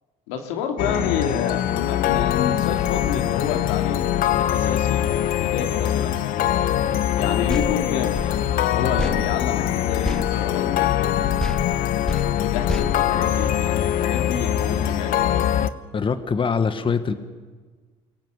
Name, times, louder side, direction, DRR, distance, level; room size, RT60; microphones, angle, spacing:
voice 1, 0.3-5.1 5.4-6.2 7.2-8.5 8.7-11.1 12.4-15.2, left 7 dB, 85° left, 3 dB, 2.4 m, -29 dB
sound 1, 0.8-15.7, left 11 dB, 65° left, 1.0 m, -22 dB
sound 2, 7.5-11.1 11.4-13.9, left 1 dB, 5° left, 0.6 m, -31 dB
voice 2, 15.9-17.1, left 5 dB, 35° left, 9 dB, 1.4 m, -23 dB
23.5 x 17.0 x 8.1 m, 1.4 s
supercardioid pair, 70°, 15 cm